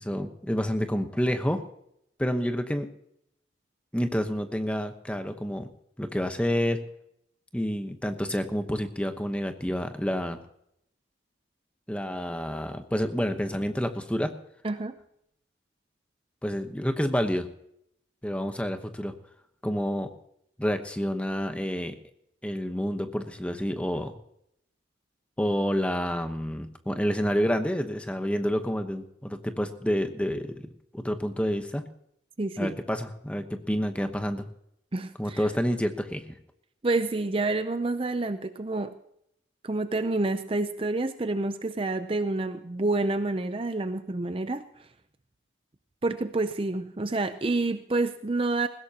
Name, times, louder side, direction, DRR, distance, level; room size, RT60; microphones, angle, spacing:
voice 1, 0.0-1.6 2.2-2.9 3.9-5.7 6.0-6.8 7.5-10.4 11.9-14.3 16.4-17.5 18.2-19.2 19.6-20.1 20.6-21.9 22.4-24.1 25.4-30.6 30.9-31.8 32.6-34.5 35.2-36.2, equal, 5° left, 7 dB, 1.0 m, -28 dB
voice 2, 32.4-32.7 34.9-35.5 36.8-38.9 39.6-44.6 46.0-48.7, right 2 dB, 30° right, 10 dB, 0.5 m, -28 dB
20.0 x 16.5 x 2.9 m, 0.74 s
head